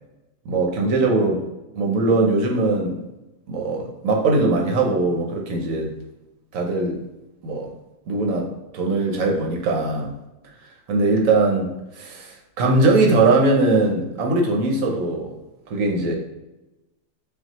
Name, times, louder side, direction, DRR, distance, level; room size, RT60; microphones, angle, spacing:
voice 1, 0.5-1.4 1.7-3.0 3.5-5.9 6.5-6.9 7.4-7.7 8.1-8.5 8.7-10.1 10.9-15.3 15.7-16.1, right 2 dB, 65° right, 1 dB, 0.9 m, -20 dB
5.7 x 2.3 x 2.8 m, 1.0 s
omnidirectional pair, 1.9 m